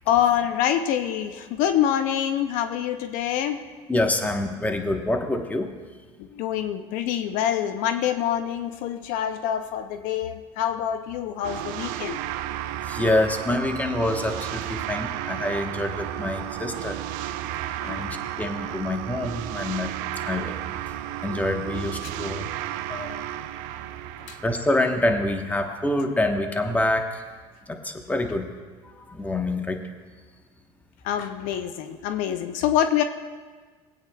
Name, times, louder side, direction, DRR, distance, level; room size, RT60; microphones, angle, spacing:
voice 1, 0.1-3.6 6.3-12.2 17.8-18.1 24.3-24.4 31.0-33.0, left 10 dB, 70° left, 9 dB, 0.5 m, -25 dB
voice 2, 3.9-5.7 12.9-17.0 17.8-18.1 18.4-20.0 20.3-20.6 21.2-22.5 22.9-23.1 24.4-27.2 27.7-28.5 28.9-29.8, left 1 dB, 10° left, 4 dB, 1.1 m, -26 dB
sound 1, 11.4-25.8, right 12 dB, 70° right, 0.5 m, -33 dB
20.0 x 8.8 x 2.3 m, 1.4 s
supercardioid pair, 95°, 15 cm